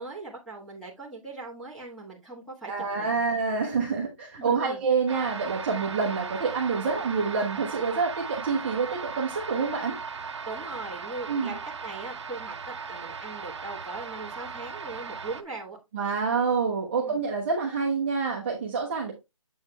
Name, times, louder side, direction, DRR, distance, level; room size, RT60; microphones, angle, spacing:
voice 1, 0.0-3.2 4.4-4.8 6.8-7.0 10.4-15.8 16.9-17.2, right 3 dB, ahead, 1.2 m, -40 dB
voice 2, 2.7-9.9 11.3-11.5 15.9-19.1, right 5 dB, 20° right, 0.7 m, -27 dB
sound 1, 5.1-15.4, right 5 dB, 55° right, 0.6 m, -37 dB
7.3 x 7.2 x 2.2 m
hypercardioid pair, 165°, 17 cm